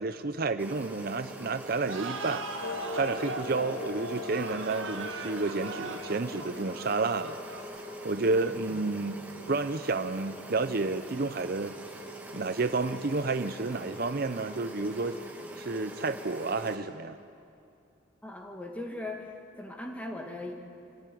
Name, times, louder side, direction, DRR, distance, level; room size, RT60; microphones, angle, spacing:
voice 1, 0.0-2.4 2.9-7.4 8.0-9.2 9.5-11.8 12.3-15.2 15.6-17.2, right 3 dB, 50° right, 10 dB, 0.6 m, -30 dB
sound 1, 0.6-16.8, right 1 dB, 10° right, 1.9 m, -44 dB
sound 2, 1.9-8.3, right 3 dB, 80° right, 1.6 m, -40 dB
Clock, 2.6-7.6, left 3 dB, 75° left, 2.5 m, -41 dB
voice 2, 18.2-20.5, left 2 dB, 5° left, 1 dB, 2.0 m, -39 dB
26.5 x 15.0 x 9.3 m, 2.6 s
head